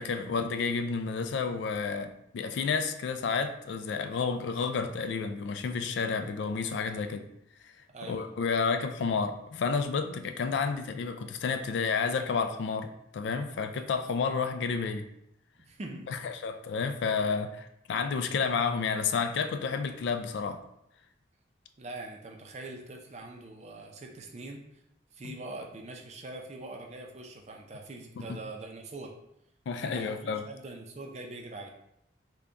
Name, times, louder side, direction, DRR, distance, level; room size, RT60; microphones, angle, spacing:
voice 1, 0.0-7.3 7.6-7.7 8.0-15.1 16.1-20.6 25.2-25.3 28.2-28.3 29.7-30.4, left 5 dB, 65° left, 8 dB, 0.3 m, -31 dB
voice 2, 7.9-8.3 15.6-16.1 21.8-24.6 25.1-29.1 29.8-31.7, right 2 dB, 35° right, 1 dB, 0.5 m, -43 dB
3.5 x 2.2 x 3.9 m, 0.78 s
head